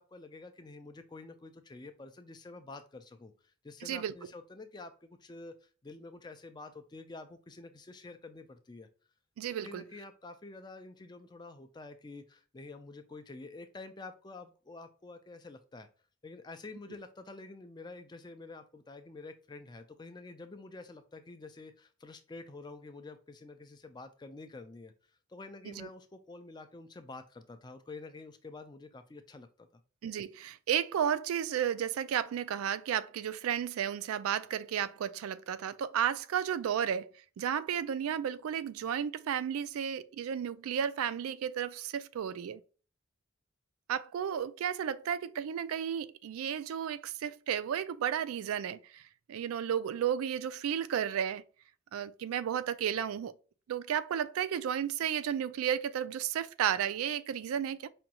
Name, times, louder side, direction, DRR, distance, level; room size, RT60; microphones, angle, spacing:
voice 1, 0.0-8.9 9.6-15.9 16.2-24.9 25.3-29.7, left 3 dB, 20° left, 0.3 m, -48 dB
voice 2, 3.8-4.1 9.4-9.8 25.7-25.9 30.0-37.1 37.4-42.6 43.9-49.0 49.3-51.4 51.9-53.3 53.7-57.9, right 9 dB, 90° right, 0.3 m, -33 dB
5.0 x 2.3 x 2.8 m
head